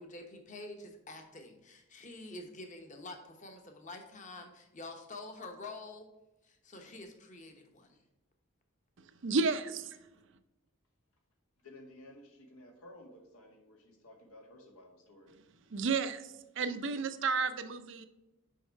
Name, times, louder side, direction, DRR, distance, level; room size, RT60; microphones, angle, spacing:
voice 1, 0.0-6.1 6.4-8.0, left 2 dB, 35° left, 4 dB, 1.0 m, -47 dB
voice 2, 9.2-10.0 15.7-18.1, right 4 dB, 60° right, 10 dB, 0.6 m, -32 dB
voice 3, 11.6-15.4, left 1 dB, 90° left, 1 dB, 1.9 m, -54 dB
6.5 x 5.4 x 4.6 m, 0.99 s
head